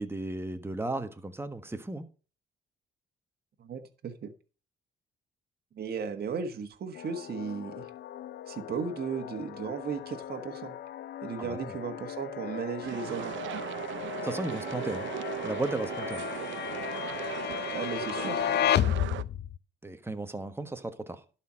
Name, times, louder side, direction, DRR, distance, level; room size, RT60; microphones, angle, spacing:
voice 1, 0.0-2.0 11.4-11.7 14.2-15.1 15.4-16.2 19.8-21.2, right 2 dB, 10° right, 1.3 m, -35 dB
voice 2, 3.6-4.3 5.7-7.8 8.5-10.8 11.2-13.3 17.7-18.4, right 6 dB, 55° right, 1.5 m, -35 dB
sound 1, 7.0-19.6, left 11 dB, 60° left, 0.5 m, -34 dB
sound 2, 12.8-19.2, right 13 dB, 70° right, 0.6 m, -37 dB
11.5 x 4.5 x 6.3 m
cardioid pair, 90°, 20 cm